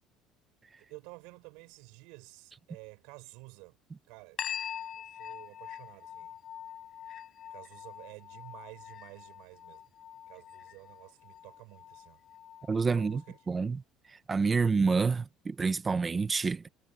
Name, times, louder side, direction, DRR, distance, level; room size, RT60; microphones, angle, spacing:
voice 1, 0.8-3.8 4.1-4.4 5.0-6.4 7.5-9.8 10.3-12.2 12.9-13.4, right 27 dB, 90° right, 6.2 m, -51 dB
sound 1, 4.4-13.4, left 10 dB, 40° left, 6.7 m, -44 dB
voice 2, 12.7-13.2 13.5-13.8 14.3-16.7, right 4 dB, 20° right, 1.1 m, -28 dB
cardioid pair, 150°, 0 cm